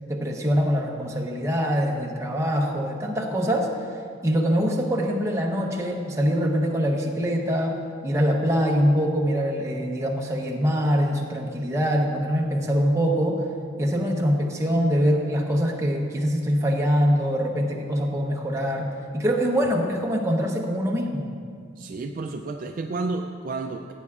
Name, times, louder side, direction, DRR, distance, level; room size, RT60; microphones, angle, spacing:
voice 1, 0.1-3.7 4.2-7.7 8.0-13.4 13.8-21.3, equal, 15° right, -1 dB, 0.9 m, -24 dB
voice 2, 21.8-23.9, right 3 dB, 45° right, 4 dB, 0.3 m, -31 dB
15.5 x 8.3 x 2.4 m, 2.1 s
head